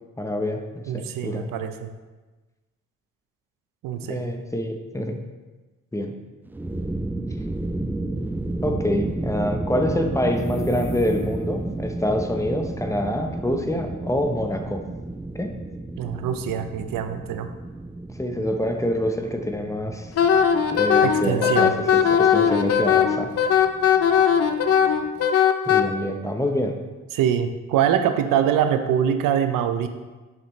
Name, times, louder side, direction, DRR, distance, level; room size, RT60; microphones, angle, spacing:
voice 1, 0.2-1.5 4.1-5.2 5.9-6.1 8.6-14.8 15.3-15.5 18.2-20.1 20.7-23.3 25.7-26.8, left 1 dB, 10° left, 4 dB, 0.8 m, -26 dB
voice 2, 0.9-1.9 3.8-4.2 16.0-17.5 21.0-21.7 27.1-29.9, right 9 dB, 80° right, 8 dB, 0.6 m, -24 dB
sound 1, 6.5-25.3, right 2 dB, 5° right, 0.3 m, -33 dB
sound 2, 10.2-11.8, left 2 dB, 90° left, 0.9 m, -38 dB
Wind instrument woodwind instrument, 20.2-25.8, left 8 dB, 50° left, 0.6 m, -18 dB
6.9 x 5.2 x 3.2 m, 1.2 s
cardioid pair, 70°, 32 cm